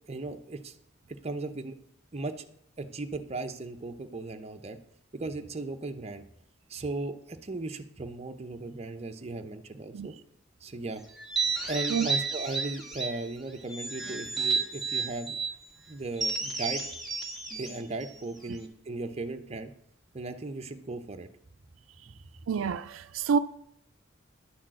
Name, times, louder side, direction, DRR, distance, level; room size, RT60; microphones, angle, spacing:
voice 1, 0.1-0.7 1.1-1.8 2.1-2.5 2.8-4.8 5.1-6.2 6.7-10.2 10.6-11.0 11.7-15.4 15.9-16.8 17.6-19.7 20.1-21.3 22.1-22.2, right 2 dB, 35° right, 0.7 m, -37 dB
sound 1, 11.2-13.2 13.7-15.6 16.1-18.7, right 5 dB, ahead, 1.5 m, -32 dB
voice 2, 22.5-23.4, right 6 dB, 90° right, 0.4 m, -28 dB
11.0 x 4.4 x 7.5 m
head